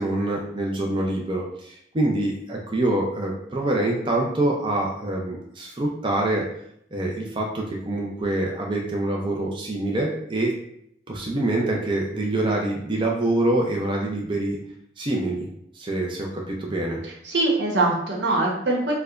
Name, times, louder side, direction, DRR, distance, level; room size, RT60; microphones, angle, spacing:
voice 1, 0.0-6.5 6.9-10.6 11.1-14.6 15.0-15.5 15.7-17.0, right 1 dB, 30° right, -1 dB, 0.5 m, -25 dB
voice 2, 17.0-18.9, right 2 dB, 85° right, -2 dB, 0.9 m, -23 dB
4.6 x 2.2 x 2.4 m, 0.72 s
head